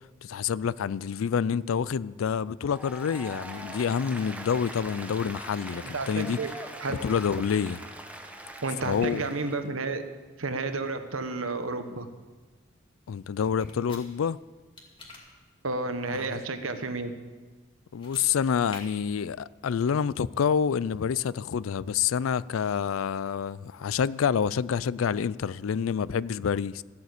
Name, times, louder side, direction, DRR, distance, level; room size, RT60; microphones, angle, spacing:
voice 1, 0.2-6.4 6.9-7.8 8.8-9.2 13.1-14.4 16.1-16.4 17.9-26.8, left 7 dB, 85° left, 0.4 m, -28 dB
Applause, 2.6-9.7, right 1 dB, 5° right, 1.0 m, -42 dB
voice 2, 5.7-6.5 6.8-7.0 8.6-10.0 10.4-12.1 15.6-17.1, right 3 dB, 85° right, 1.2 m, -31 dB
sound 1, 13.6-14.0 14.8-15.2 17.9-18.3 18.7-18.8, left 3 dB, 25° left, 2.4 m, -45 dB
14.5 x 8.4 x 8.2 m
head